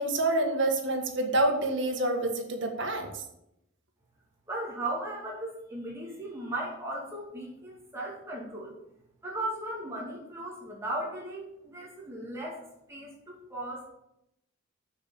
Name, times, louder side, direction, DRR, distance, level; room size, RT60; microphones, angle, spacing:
voice 1, 0.0-3.1, right 2 dB, 60° right, 2 dB, 1.8 m, -27 dB
voice 2, 4.5-8.8 9.2-13.9, right 1 dB, 15° right, -4 dB, 2.4 m, -37 dB
7.1 x 6.8 x 7.1 m, 0.82 s
head